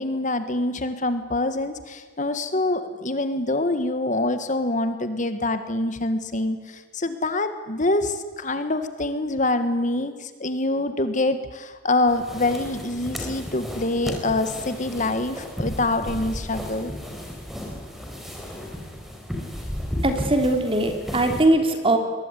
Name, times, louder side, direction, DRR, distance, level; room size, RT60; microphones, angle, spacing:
voice 1, 0.0-16.9, left 2 dB, 40° left, 10 dB, 1.6 m, -25 dB
sound 1, 12.1-21.4, equal, ahead, 4.5 m, -34 dB
voice 2, 20.0-22.0, right 1 dB, 30° right, 5 dB, 3.3 m, -20 dB
23.0 x 21.0 x 9.9 m, 1.4 s
head